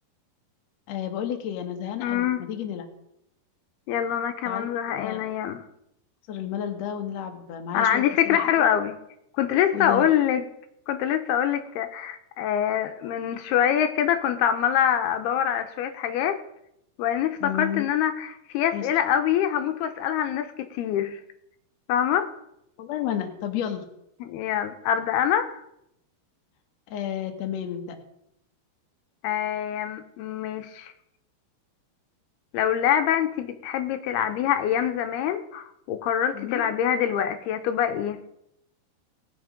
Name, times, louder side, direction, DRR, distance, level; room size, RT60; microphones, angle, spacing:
voice 1, 0.9-2.9 4.5-5.3 6.3-8.6 9.7-10.1 17.4-17.9 18.7-18.9 22.8-23.8 26.9-28.0 36.3-36.6, left 9 dB, 60° left, 4 dB, 1.9 m, -32 dB
voice 2, 2.0-2.4 3.9-5.6 7.7-9.0 9.4-10.4 10.9-16.4 17.0-21.2 21.9-22.3 24.2-25.6 29.2-30.9 32.5-38.2, left 9 dB, 80° left, 7 dB, 2.7 m, -25 dB
19.0 x 6.6 x 5.1 m, 0.79 s
omnidirectional pair, 4.6 m